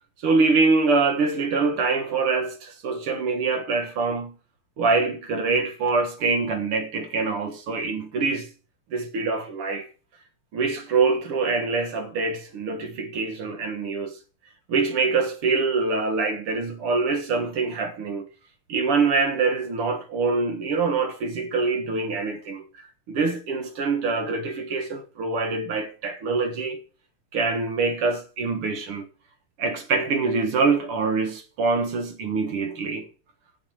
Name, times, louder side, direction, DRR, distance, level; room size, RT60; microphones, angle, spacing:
voice 1, 0.2-4.4 4.8-8.5 8.9-9.9 10.5-14.2 14.7-18.3 18.7-22.7 23.1-26.8 27.3-29.1 29.6-33.1, right 4 dB, 85° right, 2.5 m, -24 dB
8.2 x 7.2 x 8.6 m
omnidirectional pair, 2.4 m